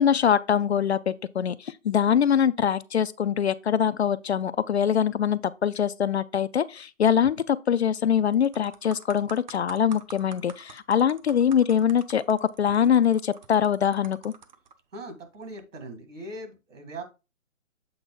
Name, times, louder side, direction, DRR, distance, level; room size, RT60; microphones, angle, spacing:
voice 1, 0.0-14.3, left 8 dB, 55° left, 0.5 m, -23 dB
sound 1, 7.7-8.0 8.3-14.7 15.4-15.6, right 6 dB, 35° right, 0.7 m, -48 dB
voice 2, 14.9-17.0, right 1 dB, 70° right, 2.2 m, -40 dB
7.8 x 3.9 x 3.8 m
figure-of-eight pair, 140°, 39 cm